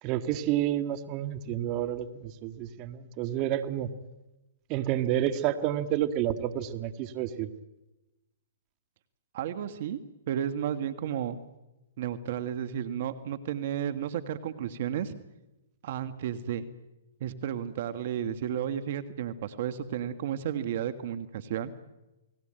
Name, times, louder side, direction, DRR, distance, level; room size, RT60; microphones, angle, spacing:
voice 1, 0.0-3.9 4.7-7.5, right 12 dB, 35° right, 9 dB, 1.8 m, -29 dB
voice 2, 9.3-10.0 10.3-11.4 12.0-15.1 15.8-16.7 17.2-21.8, right 9 dB, 55° right, 11 dB, 1.7 m, -33 dB
29.5 x 20.0 x 9.1 m, 1.0 s
hypercardioid pair, 130°, 0 cm